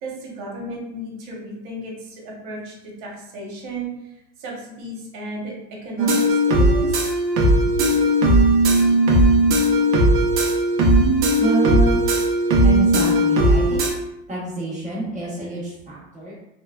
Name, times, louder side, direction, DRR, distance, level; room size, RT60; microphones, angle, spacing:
voice 1, 0.0-3.9 4.4-5.5 5.8-7.0, right 1 dB, 70° right, -2 dB, 1.1 m, -34 dB
sound 1, 6.0-13.9, right 1 dB, 50° right, 0.7 m, -17 dB
voice 2, 11.4-12.0 12.6-13.8 14.3-16.3, right 1 dB, 20° right, -6 dB, 1.0 m, -27 dB
2.9 x 2.2 x 2.3 m, 0.86 s
supercardioid pair, 130°, 38 cm